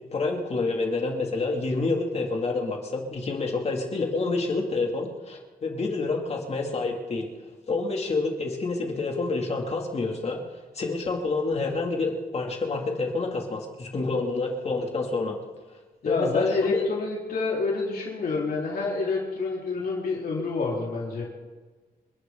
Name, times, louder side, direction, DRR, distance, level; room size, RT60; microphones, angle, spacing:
voice 1, 0.1-7.3 7.7-10.4 10.7-15.4 16.0-16.9, left 3 dB, 40° left, 1 dB, 2.8 m, -28 dB
voice 2, 16.0-21.2, left 3 dB, 75° left, -4 dB, 4.5 m, -27 dB
28.0 x 11.5 x 4.0 m, 1.3 s
wide cardioid pair, 170°, 16 cm